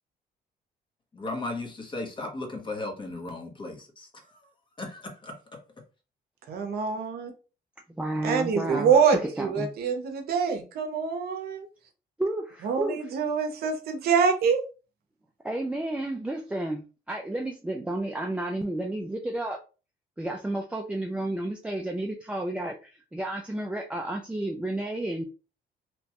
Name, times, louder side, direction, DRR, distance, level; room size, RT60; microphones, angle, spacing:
voice 1, 1.2-4.4 4.8-5.6, left 2 dB, 30° left, 0.9 m, -36 dB
voice 2, 6.5-7.3 8.2-11.7 12.6-14.6, right 6 dB, 70° right, 0.7 m, -25 dB
voice 3, 7.9-9.7 12.2-13.1 15.4-19.6 20.2-25.2, right 1 dB, 5° right, 0.3 m, -31 dB
2.9 x 2.2 x 2.8 m
cardioid pair, 105°, 17 cm